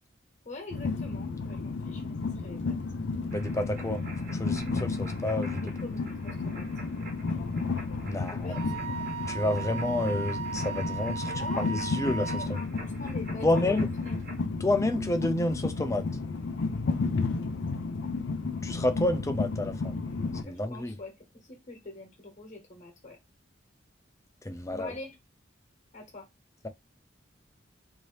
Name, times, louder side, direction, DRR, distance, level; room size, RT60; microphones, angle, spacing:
voice 1, 0.4-2.8 5.6-6.6 8.1-8.6 9.0-9.2 11.2-11.8 12.0-14.2 20.5-23.2 24.7-25.1 25.9-26.3, left 2 dB, 40° left, 1.1 m, -44 dB
Train, 0.7-20.4, left 3 dB, 70° left, 0.5 m, -32 dB
voice 2, 3.3-4.0 4.3-5.6 8.0-8.6 9.3-12.3 13.4-13.9 14.6-16.0 18.6-20.0 20.4-20.9 24.4-24.9, left 1 dB, 15° left, 0.5 m, -29 dB
sound 1, 3.3-14.4, right 2 dB, 55° right, 1.4 m, -48 dB
Wind instrument woodwind instrument, 8.5-12.5, right 6 dB, 90° right, 0.4 m, -36 dB
2.8 x 2.6 x 3.2 m
head